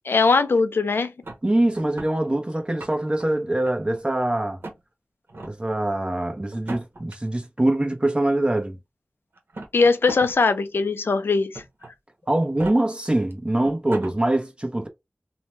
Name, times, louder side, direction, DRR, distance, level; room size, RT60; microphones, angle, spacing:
voice 1, 0.1-1.1 9.7-11.6, left 4 dB, 85° left, 0.4 m, -20 dB
sound 1, 1.2-2.1 2.6-3.2 3.6-4.2 4.6-4.8 5.3-5.5 6.5-7.1 8.2-8.3 9.4-10.3 10.7-10.8 11.5-11.9 12.4-12.7 13.3-13.4 13.6-14.1, right 2 dB, 75° right, 0.9 m, -37 dB
voice 2, 1.4-4.6 5.5-8.8 12.3-14.9, right 1 dB, 25° right, 0.8 m, -23 dB
2.8 x 2.1 x 3.1 m
wide cardioid pair, 45°, 4 cm